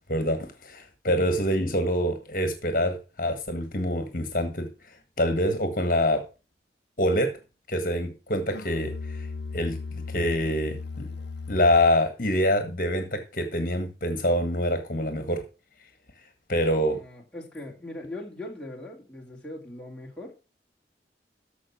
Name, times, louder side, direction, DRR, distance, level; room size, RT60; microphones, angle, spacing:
voice 1, 0.1-4.7 5.2-6.2 7.0-7.3 7.7-9.3 9.5-9.8 10.1-11.1 11.5-15.4 16.5-17.0, equal, 50° left, 7 dB, 1.6 m, -25 dB
Musical instrument, 8.5-12.0, left 4 dB, 70° left, 0.6 m, -36 dB
voice 2, 16.9-20.4, left 1 dB, 5° left, -3 dB, 2.9 m, -40 dB
14.0 x 5.2 x 6.1 m, 0.32 s
head